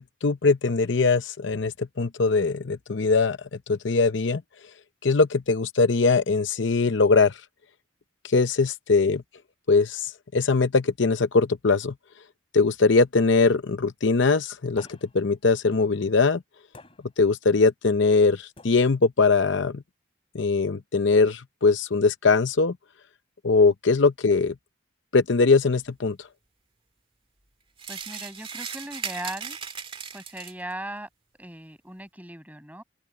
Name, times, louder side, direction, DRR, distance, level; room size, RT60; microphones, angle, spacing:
voice 1, 0.0-4.4 5.0-7.4 8.2-9.2 9.7-11.9 12.5-16.4 17.2-19.8 20.3-22.8 23.4-24.5 25.1-26.3, left 4 dB, 65° left, 0.7 m, -21 dB
sound 1, 14.8-15.4 16.7-17.4 18.6-19.2, left 2 dB, 30° left, 2.8 m, -50 dB
sound 2, 27.8-30.7, right 6 dB, 25° right, 2.4 m, -37 dB
voice 2, 27.9-29.6 30.1-31.1 31.4-32.8, right 1 dB, 10° right, 8.0 m, -38 dB
head